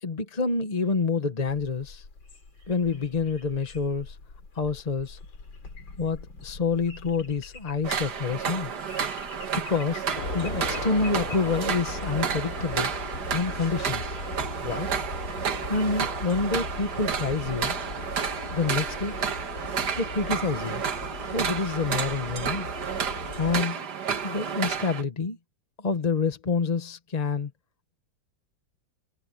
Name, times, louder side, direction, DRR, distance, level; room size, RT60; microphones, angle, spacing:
voice 1, 0.0-2.1 2.7-4.2 4.5-5.2 6.0-8.7 9.5-10.1 10.3-12.9 13.3-14.2 14.6-14.9 15.7-17.8 18.5-19.1 20.0-20.8 21.3-22.7 23.4-23.8 24.2-25.4 25.8-27.5, left 4 dB, 30° left, 0.8 m, -27 dB
sound 1, 1.5-17.8, left 3 dB, 75° left, 4.4 m, -46 dB
sound 2, 7.8-25.0, right 7 dB, 60° right, 1.9 m, -31 dB
sound 3, 10.1-23.6, left 2 dB, 50° left, 3.9 m, -37 dB
omnidirectional pair, 2.1 m